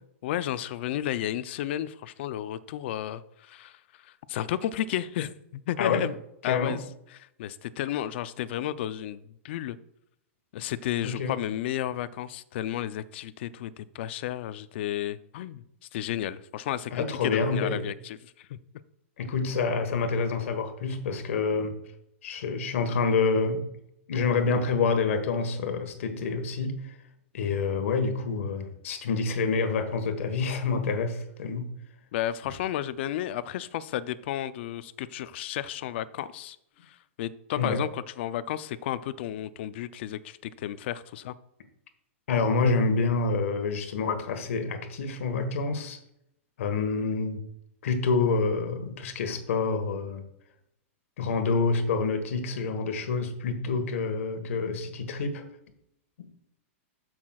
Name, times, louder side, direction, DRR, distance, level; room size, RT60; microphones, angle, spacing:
voice 1, 0.2-6.1 6.4-6.8 7.1-9.8 10.5-15.6 15.9-18.6 32.1-36.6 36.8-41.4, left 12 dB, 55° left, 15 dB, 0.5 m, -33 dB
voice 2, 6.5-6.8 11.0-11.3 16.9-17.8 19.2-21.7 22.2-23.7 24.1-26.9 27.3-31.7 37.6-37.8 42.3-46.0 46.6-47.4 47.8-50.3 51.2-55.4 56.2-56.3, left 4 dB, 70° left, 8 dB, 1.4 m, -27 dB
13.5 x 5.9 x 2.4 m, 0.78 s
hypercardioid pair, 150°, 7 cm